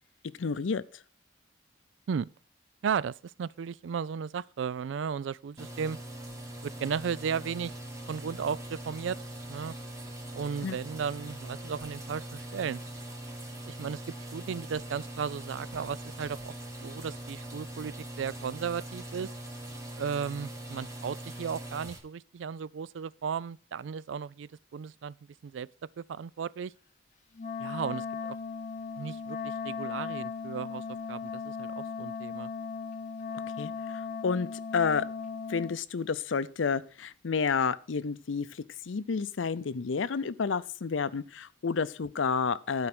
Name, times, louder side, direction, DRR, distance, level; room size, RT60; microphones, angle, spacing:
voice 1, 0.4-0.8 10.6-10.8 33.6-35.1 35.5-42.9, left 5 dB, 85° left, 0.6 m, -30 dB
voice 2, 2.8-6.0 6.6-7.7 8.1-9.7 10.3-12.8 13.6-14.0 14.3-16.5 16.8-19.3 20.0-25.7 26.0-26.7 27.6-28.4 29.0-32.5, right 6 dB, 75° right, 0.4 m, -35 dB
sound 1, 5.6-22.0, right 1 dB, 15° right, 1.9 m, -42 dB
Wind instrument woodwind instrument, 27.4-35.8, left 5 dB, 40° left, 0.7 m, -37 dB
12.0 x 4.8 x 6.0 m
head